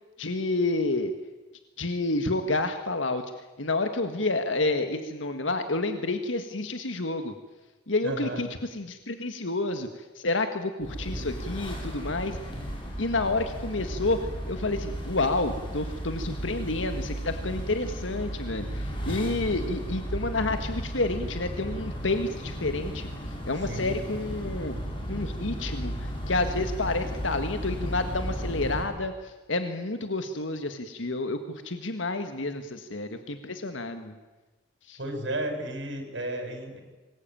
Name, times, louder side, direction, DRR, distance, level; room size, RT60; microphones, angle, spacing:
voice 1, 0.2-1.1 1.8-3.2 3.6-7.3 7.9-12.4 13.0-14.2 14.5-23.1 23.5-24.8 25.1-34.2 34.9-35.0, left 2 dB, 85° left, 8 dB, 1.7 m, -29 dB
voice 2, 8.0-8.4 19.1-19.2 23.6-23.9 35.0-36.8, right 1 dB, 70° right, 4 dB, 6.4 m, -33 dB
sound 1, 10.8-28.8, equal, 25° left, 5.9 m, -34 dB
25.5 x 21.0 x 9.0 m, 1.2 s
head